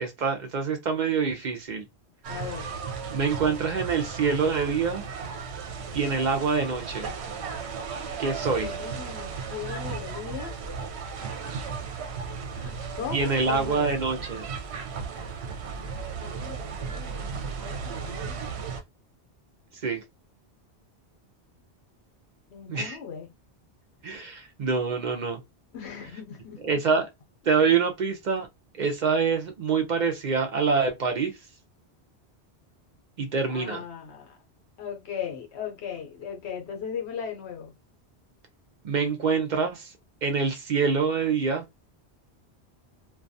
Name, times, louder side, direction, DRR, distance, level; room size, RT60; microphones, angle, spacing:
voice 1, 0.0-1.9 3.1-5.0 5.9-7.1 8.2-8.7 13.1-14.4 19.8-20.0 22.7-23.0 24.0-25.4 26.6-27.1 27.5-28.5 28.8-31.3 33.2-33.8 38.8-39.9 40.2-41.6, right 5 dB, 55° right, 0.5 m, -25 dB
sound 1, 2.2-18.8, right 5 dB, 80° right, 0.9 m, -35 dB
voice 2, 2.3-2.7 8.4-10.5 12.5-13.9 15.6-18.7 22.5-23.3 25.7-26.8 33.5-34.4 34.8-37.7, left 7 dB, 75° left, 0.9 m, -38 dB
2.3 x 2.3 x 2.6 m
omnidirectional pair, 1.1 m